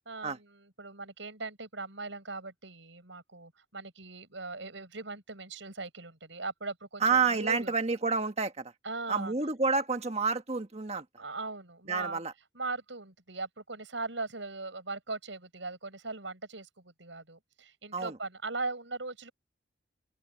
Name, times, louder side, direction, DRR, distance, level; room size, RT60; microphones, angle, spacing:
voice 1, 0.1-7.7 8.8-9.3 10.9-12.2 12.5-19.3, right 3 dB, 75° right, 6.5 m, -39 dB
voice 2, 7.0-8.7 9.1-11.0 11.9-12.3 17.9-18.2, right 4 dB, 35° right, 1.5 m, -29 dB
open air
head